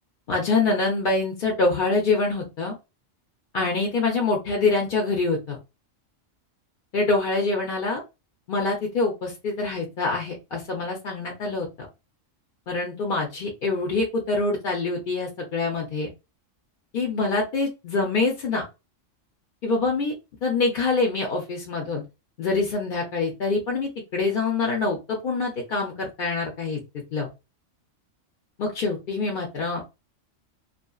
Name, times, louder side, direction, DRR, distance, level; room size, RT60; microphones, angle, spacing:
voice 1, 0.3-2.7 3.5-5.6 6.9-8.0 8.5-11.9 12.7-16.1 16.9-18.6 19.6-20.1 20.4-22.0 22.4-27.3 28.6-29.8, left 3 dB, 55° left, 0 dB, 0.7 m, -25 dB
2.8 x 2.5 x 2.3 m, 0.27 s
omnidirectional pair, 1.3 m